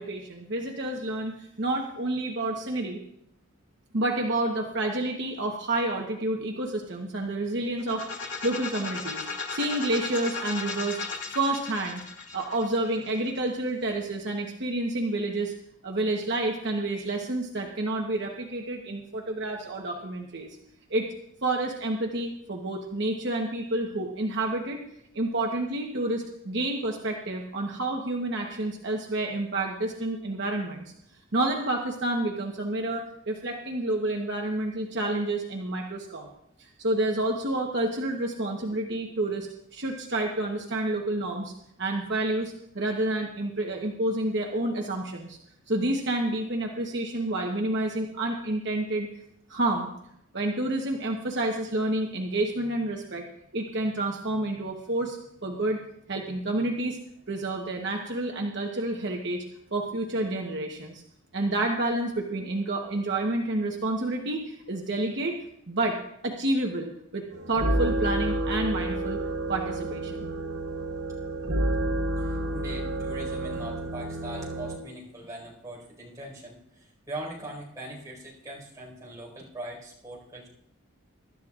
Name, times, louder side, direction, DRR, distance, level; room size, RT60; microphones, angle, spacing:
voice 1, 0.0-3.0 3.9-11.0 11.3-12.0 12.3-15.5 15.8-20.5 20.9-21.1 21.4-24.8 25.1-30.9 31.3-36.3 36.6-41.5 41.8-45.4 45.7-49.1 49.5-49.9 50.3-53.2 53.5-55.8 56.1-57.0 57.3-59.4 59.7-61.0 61.3-65.4 65.7-66.0 66.2-69.2 69.5-70.3, right 2 dB, 55° right, 1 dB, 1.1 m, -29 dB
sound 1, 7.8-13.6, left 4 dB, 60° left, 2.0 m, -36 dB
sound 2, 67.3-74.8, right 1 dB, 75° right, 3.6 m, -30 dB
voice 2, 72.1-80.5, right 1 dB, 15° right, -3 dB, 4.7 m, -41 dB
24.0 x 12.0 x 2.5 m, 0.77 s
head